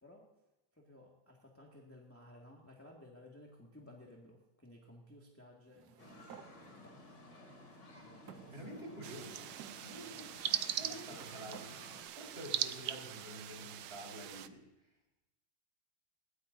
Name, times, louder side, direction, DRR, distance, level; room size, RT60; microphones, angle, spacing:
voice 1, 0.7-7.6 8.0-9.0 10.0-10.4 10.7-11.4, left 1 dB, 5° left, -2 dB, 1.9 m, -58 dB
sound 1, 5.7-6.5 7.3-7.4 8.3-9.1 9.6-9.8 10.7-11.7, right 10 dB, 65° right, 1.2 m, -55 dB
sound 2, 6.0-12.0, left 1 dB, 55° left, 3.8 m, -55 dB
voice 2, 8.5-9.5 9.8-11.7 12.2-14.6, right 1 dB, 30° right, 0 dB, 4.8 m, -49 dB
sound 3, 9.0-14.5, right 11 dB, 80° right, 1.5 m, -40 dB
21.0 x 18.0 x 2.7 m, 1.0 s
omnidirectional pair, 2.2 m